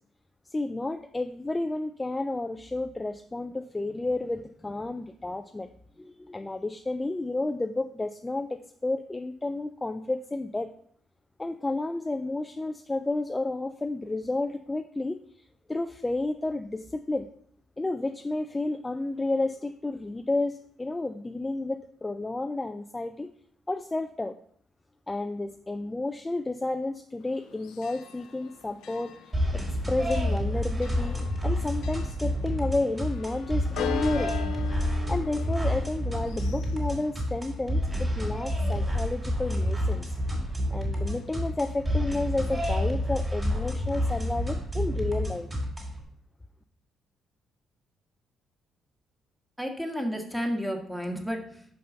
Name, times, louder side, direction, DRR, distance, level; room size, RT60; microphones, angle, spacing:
voice 1, 0.5-5.7 6.0-10.7 11.4-15.2 15.7-17.3 17.8-23.3 23.7-24.4 25.1-29.2 29.5-31.2 31.4-34.3 35.1-40.1 40.7-45.5, left 2 dB, 20° left, 7 dB, 0.4 m, -31 dB
Church bell, 27.2-42.3, left 7 dB, 80° left, 0.6 m, -42 dB
sound 1, 29.3-46.0, equal, 20° right, 3.1 m, -29 dB
voice 2, 49.6-51.6, equal, ahead, 2 dB, 1.5 m, -31 dB
5.5 x 5.5 x 5.4 m, 0.62 s
cardioid pair, 75°, 0 cm